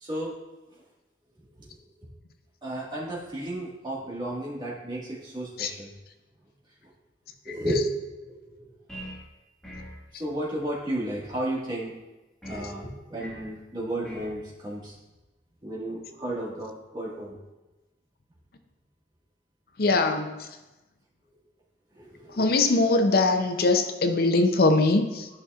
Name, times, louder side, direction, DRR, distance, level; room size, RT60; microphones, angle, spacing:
voice 1, 0.0-0.4 2.6-5.9 7.4-7.9 8.2-8.7 10.2-11.9 12.4-14.9 15.6-17.4 22.0-22.5, right 1 dB, 25° right, -6 dB, 1.7 m, -33 dB
sound 1, 8.9-9.3 9.6-10.0 12.4-12.7 13.2-13.5 14.0-14.4, equal, 5° left, 1.5 m, -40 dB
voice 2, 19.8-20.3 22.4-25.3, left 2 dB, 55° left, 7 dB, 0.6 m, -22 dB
11.5 x 5.6 x 2.4 m, 1.1 s
head